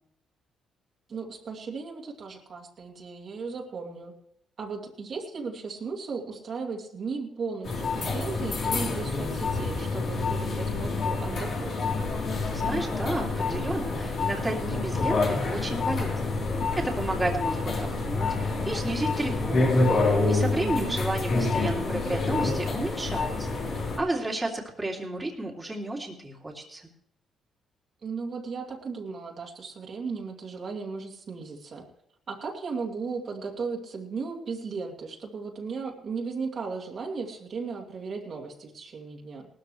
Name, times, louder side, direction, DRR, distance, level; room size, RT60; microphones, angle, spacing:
voice 1, 1.1-4.1 4.6-11.9 20.5-21.0 28.0-31.8 32.3-39.5, right 4 dB, 50° right, -1 dB, 2.5 m, -36 dB
sound 1, 7.6-24.0, left 3 dB, 60° left, 3.5 m, -27 dB
voice 2, 12.5-16.4 16.8-19.7 20.3-26.9, right 2 dB, 20° right, -2 dB, 2.7 m, -32 dB
18.5 x 13.0 x 3.2 m, 0.75 s
cardioid pair, 90°, 0 cm